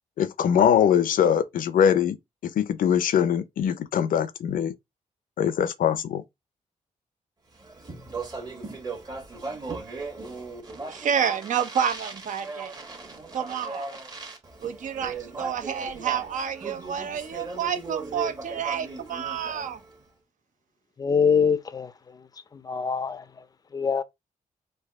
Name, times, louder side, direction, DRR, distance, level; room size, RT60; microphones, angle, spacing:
voice 1, 0.2-2.2 2.4-4.7 5.4-6.2, left 8 dB, 90° left, 0.6 m, -22 dB
Speech, 7.6-20.0, right 3 dB, 30° right, 1.1 m, -38 dB
voice 2, 10.9-12.7 13.3-14.0 14.6-19.8, right 8 dB, 70° right, 0.7 m, -29 dB
voice 3, 21.0-21.9 22.5-23.2 23.7-24.0, left 6 dB, 30° left, 0.4 m, -23 dB
4.5 x 2.7 x 3.5 m
wide cardioid pair, 145°, 14 cm